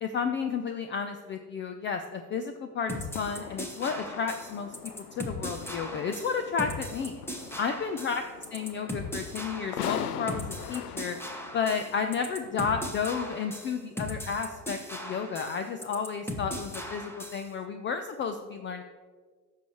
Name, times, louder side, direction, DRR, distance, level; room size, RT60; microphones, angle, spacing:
voice 1, 0.0-4.7 5.2-7.2 7.6-8.2 8.5-11.2 11.5-18.8, left 6 dB, 25° left, 7 dB, 0.5 m, -32 dB
sound 1, 2.9-17.5, left 1 dB, 5° left, 1.2 m, -38 dB
sound 2, 3.0-12.8, left 9 dB, 70° left, 0.7 m, -41 dB
15.5 x 6.5 x 3.0 m, 1.5 s
figure-of-eight pair, 70°, 47 cm